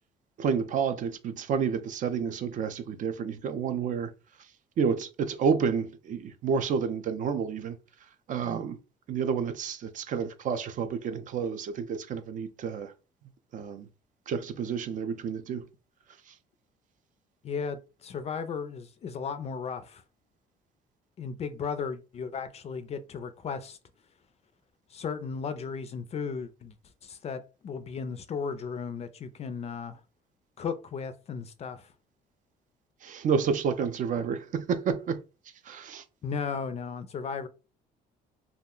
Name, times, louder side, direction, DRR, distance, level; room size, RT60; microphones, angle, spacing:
voice 1, 0.4-4.1 4.8-7.8 8.3-8.8 9.1-12.9 13.5-13.9 14.3-15.6 33.0-35.2 35.7-36.0, right 6 dB, 50° right, 0.4 m, -30 dB
voice 2, 17.4-20.0 21.2-23.8 24.9-26.7 27.0-30.0 30.6-31.9 36.2-37.5, left 5 dB, 40° left, 0.4 m, -35 dB
2.3 x 2.1 x 3.6 m
cardioid pair, 110°, 17 cm